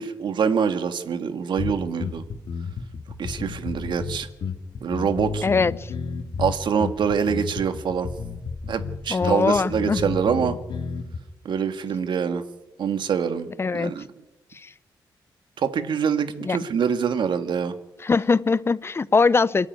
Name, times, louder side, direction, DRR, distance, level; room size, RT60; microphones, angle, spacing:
voice 1, 0.0-2.2 3.2-4.3 4.8-5.5 6.4-8.1 8.7-10.6 11.4-12.4 12.8-14.0 15.6-17.7, right 6 dB, 70° right, 1.9 m, -25 dB
sound 1, 1.6-11.2, left 5 dB, 70° left, 2.4 m, -32 dB
voice 2, 5.4-5.9 9.1-10.1 13.6-13.9 14.5-14.7 16.4-16.6 18.0-19.7, left 4 dB, 30° left, 0.7 m, -21 dB
27.5 x 13.0 x 9.6 m
cardioid pair, 115°, 8 cm